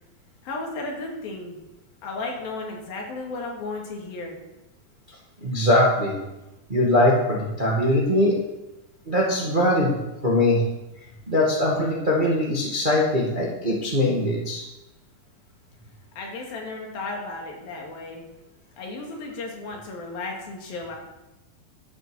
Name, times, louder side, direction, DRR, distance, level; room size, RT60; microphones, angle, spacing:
voice 1, 0.4-1.6 2.0-4.4 16.2-18.3 18.8-21.0, left 3 dB, 90° left, 0 dB, 4.1 m, -34 dB
voice 2, 5.4-6.2 6.7-8.4 9.1-10.6 11.3-14.6, left 1 dB, 25° right, -3 dB, 1.1 m, -21 dB
13.0 x 6.7 x 6.2 m, 0.97 s
omnidirectional pair, 4.0 m